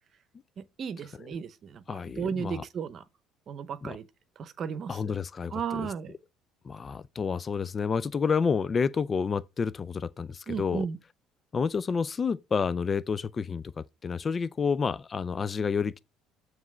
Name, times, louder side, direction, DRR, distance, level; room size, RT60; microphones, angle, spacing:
voice 1, 0.6-1.8 2.2-3.0 3.5-4.1 4.4-5.2 5.5-6.2 10.5-11.0, right 7 dB, 45° right, 0.8 m, -34 dB
voice 2, 1.9-2.6 3.8-4.0 4.9-5.9 6.6-10.9 11.5-16.0, left 5 dB, 30° left, 0.3 m, -29 dB
7.3 x 3.1 x 6.2 m
supercardioid pair, 95°, 0 cm